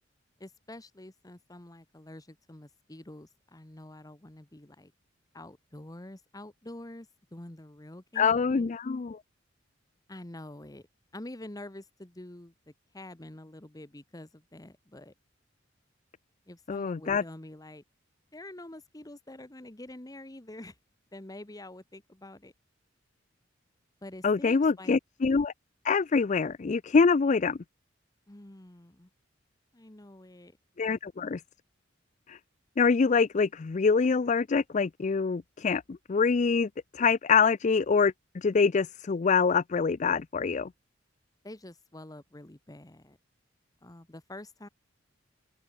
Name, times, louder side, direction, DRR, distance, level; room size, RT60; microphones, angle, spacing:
voice 1, 0.4-4.9 5.3-8.7 10.1-10.9 11.1-15.1 16.5-17.8 18.3-20.7 21.1-22.5 24.0-25.0 28.3-29.1 29.7-30.5 41.4-43.2 43.8-44.7, left 1 dB, 20° left, 1.2 m, -46 dB
voice 2, 8.2-9.2 16.7-17.2 24.2-25.5 25.8-27.6 30.8-31.4 32.3-32.4 32.8-40.7, left 5 dB, 40° left, 0.4 m, -25 dB
open air
head